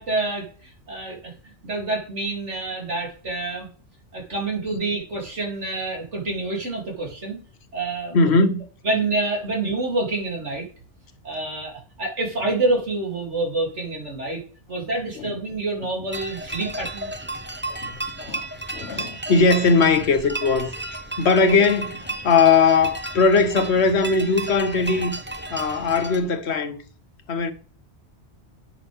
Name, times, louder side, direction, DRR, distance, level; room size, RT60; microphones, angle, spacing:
voice 1, 0.0-1.3 1.6-3.7 4.1-7.4 7.7-8.2 8.8-10.7 11.2-14.4 14.7-17.1, right 2 dB, 85° right, 3.4 m, -27 dB
voice 2, 8.1-8.6 15.2-15.3 17.7-20.7 21.2-25.1 25.5-26.8 27.3-27.5, left 4 dB, 70° left, 1.3 m, -20 dB
sound 1, 16.1-26.2, right 2 dB, 10° right, 0.8 m, -33 dB
11.5 x 7.3 x 3.5 m
omnidirectional pair, 1.2 m